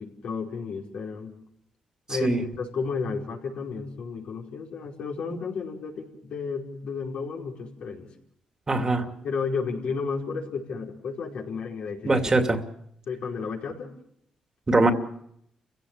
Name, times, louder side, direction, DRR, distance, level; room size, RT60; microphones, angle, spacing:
voice 1, 0.0-1.4 2.1-8.1 9.2-12.2 13.1-13.9, left 5 dB, 75° left, -1 dB, 5.0 m, -32 dB
voice 2, 2.1-2.5 8.7-9.1 12.0-12.6 14.7-14.9, right 2 dB, 30° right, 6 dB, 2.7 m, -22 dB
29.0 x 16.5 x 6.7 m, 0.72 s
cardioid pair, 75°, 2 cm